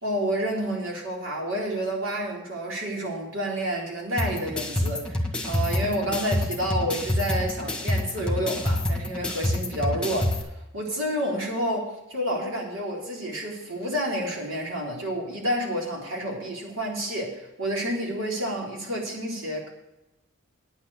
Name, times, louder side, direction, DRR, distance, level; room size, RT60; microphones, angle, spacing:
voice 1, 0.0-10.5 10.7-19.7, equal, 65° right, -2 dB, 4.0 m, -29 dB
sound 1, 4.2-10.4, left 1 dB, 5° left, 1.6 m, -27 dB
9.7 x 8.9 x 6.7 m, 0.93 s
head